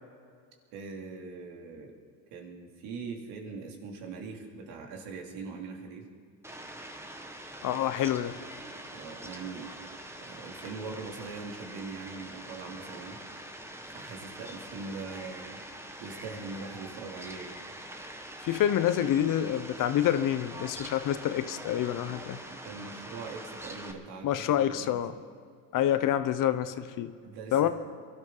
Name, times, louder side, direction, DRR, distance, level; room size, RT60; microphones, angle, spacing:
voice 1, 0.7-1.9 2.3-6.0 8.9-9.7 10.2-13.2 13.9-15.6 16.0-17.5 22.5-25.0 27.2-27.7, right 4 dB, 70° right, 2 dB, 2.9 m, -41 dB
Fowl, 6.4-23.9, right 1 dB, 5° right, 1.4 m, -44 dB
voice 2, 7.6-8.3 18.4-22.4 24.2-25.2 25.7-27.1 27.5-27.7, left 11 dB, 50° left, 12 dB, 0.9 m, -27 dB
23.0 x 12.5 x 3.9 m, 2.1 s
supercardioid pair, 95°, 41 cm